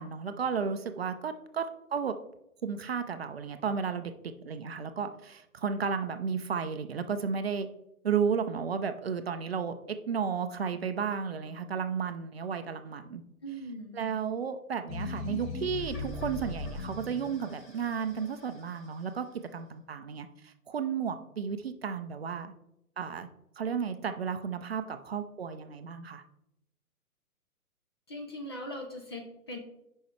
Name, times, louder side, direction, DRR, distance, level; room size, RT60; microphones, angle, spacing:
voice 1, 0.0-1.7 1.9-2.2 2.6-4.1 4.5-7.7 8.0-13.2 13.9-19.3 19.5-22.5 23.0-23.3 23.6-26.2, right 6 dB, 45° right, 9 dB, 0.5 m, -33 dB
voice 2, 13.4-14.3 28.1-29.6, equal, 20° left, 2 dB, 0.5 m, -41 dB
sound 1, 14.9-19.2, left 3 dB, 35° left, 2.5 m, -39 dB
10.0 x 5.4 x 3.2 m, 0.83 s
figure-of-eight pair, 125°, 44 cm